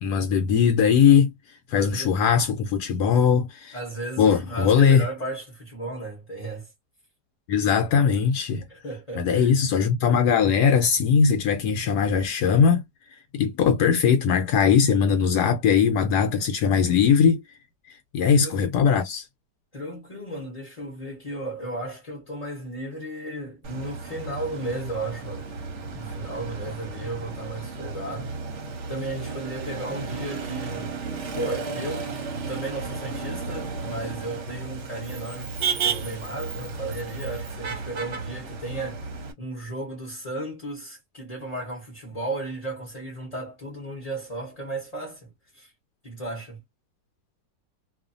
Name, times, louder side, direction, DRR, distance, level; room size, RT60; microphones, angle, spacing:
voice 1, 0.0-1.3 1.7-3.8 4.2-5.1 7.5-8.6 9.2-12.9 13.3-17.4 18.1-19.3, left 7 dB, 75° left, 1.1 m, -20 dB
voice 2, 1.7-2.2 3.7-6.7 8.7-9.5 18.3-18.7 19.7-25.5 25.9-28.3 28.9-30.9 31.3-35.6 35.8-39.1 39.4-45.7 46.0-46.6, right 2 dB, 30° left, 0.7 m, -34 dB
Motor vehicle (road), 23.6-39.3, right 4 dB, 55° right, 0.9 m, -33 dB
2.7 x 2.4 x 2.5 m
omnidirectional pair, 1.8 m